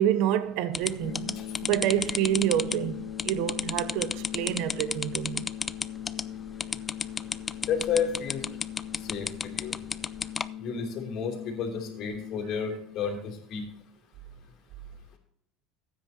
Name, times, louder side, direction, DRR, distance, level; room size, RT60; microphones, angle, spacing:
voice 1, 0.0-5.5, right 11 dB, 70° right, 0.7 m, -28 dB
sound 1, 0.7-10.5, left 4 dB, 20° left, 0.3 m, -32 dB
sound 2, 1.0-13.0, left 10 dB, 70° left, 1.4 m, -40 dB
voice 2, 7.7-8.4 9.0-9.7 10.6-13.6, left 6 dB, 55° left, 3.0 m, -31 dB
14.5 x 9.4 x 2.8 m
supercardioid pair, 115°, 0 cm